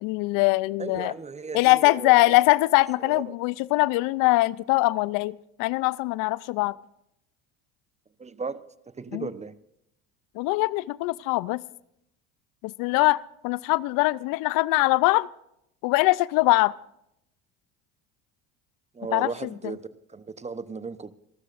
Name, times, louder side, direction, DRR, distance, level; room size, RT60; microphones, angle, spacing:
voice 1, 0.0-1.1 1.5-6.8 9.1-9.3 10.4-11.6 12.6-15.3 15.8-16.7 19.1-19.3, left 21 dB, 65° left, 0.6 m, -22 dB
voice 2, 0.8-2.4 3.0-3.3 8.2-9.6 18.9-21.1, right 4 dB, 20° right, 0.9 m, -36 dB
27.0 x 13.0 x 2.6 m
hypercardioid pair, 75°, 35 cm